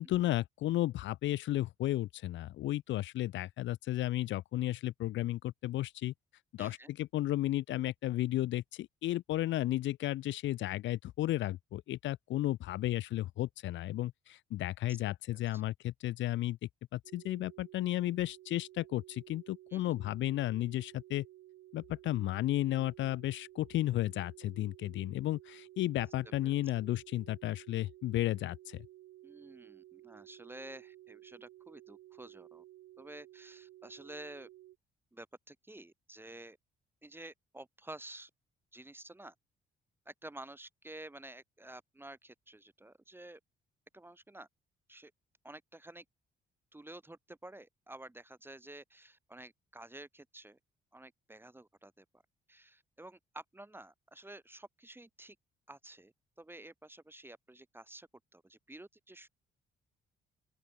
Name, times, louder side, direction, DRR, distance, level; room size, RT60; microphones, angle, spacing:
voice 1, 0.0-6.1 6.5-21.3 21.7-28.8, left 15 dB, 70° left, 0.5 m, -33 dB
voice 2, 6.6-6.9 14.9-15.6 19.7-20.0 26.4-26.6 29.2-32.6 33.0-34.5 35.1-36.6 37.0-38.3 38.7-39.3 40.1-43.4 43.9-44.5 44.9-45.1 45.4-46.0 46.7-50.6 50.9-52.2 52.5-55.4 55.7-59.3, right 1 dB, 10° right, 0.9 m, -51 dB
sound 1, 17.0-34.8, right 15 dB, 85° right, 1.6 m, -55 dB
open air
cardioid pair, 90°, 20 cm